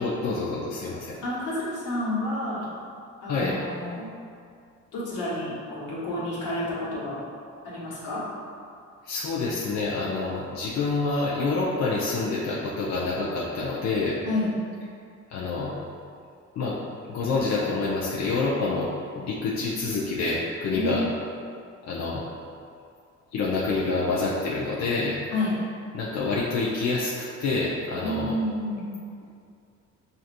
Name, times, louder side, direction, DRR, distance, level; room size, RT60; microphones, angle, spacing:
voice 1, 0.0-1.2 3.3-3.6 9.0-14.2 15.3-15.7 16.6-16.8 17.1-21.0 21.9-22.2 23.3-25.2 25.9-28.4, left 3 dB, 60° left, -5 dB, 0.6 m, -27 dB
voice 2, 1.2-2.6 3.2-4.1 4.9-7.2 7.6-8.2 14.2-14.5 20.7-21.0 25.3-25.6 28.0-28.9, left 1 dB, 85° left, -8 dB, 1.4 m, -30 dB
5.7 x 2.6 x 2.5 m, 2.3 s
cardioid pair, 90°, 30 cm